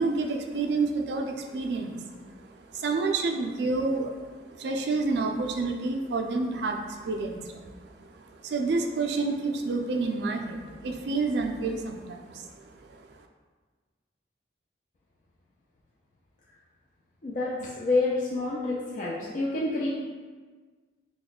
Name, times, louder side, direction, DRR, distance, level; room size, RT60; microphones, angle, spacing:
voice 1, 0.0-2.1 2.7-7.9 8.3-13.2, right 3 dB, 65° right, 3 dB, 0.3 m, -29 dB
voice 2, 17.2-19.9, left 2 dB, 45° left, -5 dB, 0.4 m, -28 dB
3.0 x 2.1 x 4.0 m, 1.4 s
head